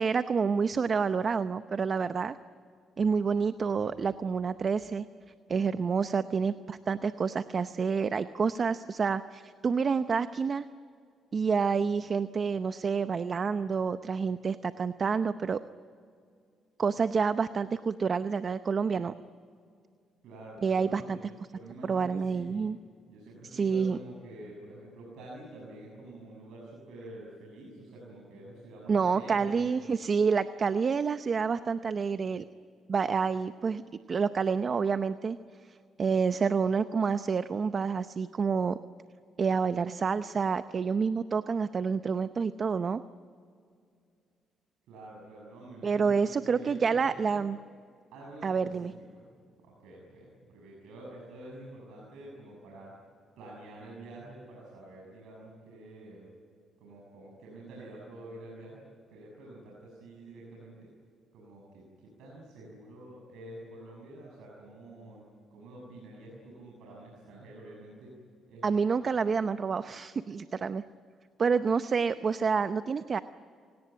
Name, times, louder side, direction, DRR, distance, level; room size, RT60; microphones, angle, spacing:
voice 1, 0.0-2.4 3.0-5.0 5.5-10.7 11.3-15.6 16.8-19.1 20.6-21.2 21.8-22.8 23.4-24.0 28.9-32.4 32.9-33.8 34.1-35.4 36.0-38.8 39.4-43.0 45.8-47.6 48.4-48.9 68.6-70.8 71.4-73.2, right 5 dB, 45° right, 12 dB, 0.7 m, -28 dB
voice 2, 20.2-21.2 21.5-22.6 23.1-29.8 44.9-47.4 48.1-48.9 49.1-49.3 49.6-52.9 53.4-56.3 56.8-60.9 61.3-65.2 65.5-68.1 68.5-69.3, right 1 dB, 85° right, -3 dB, 6.6 m, -48 dB
27.0 x 18.5 x 9.1 m, 2.3 s
cardioid pair, 90°, 0 cm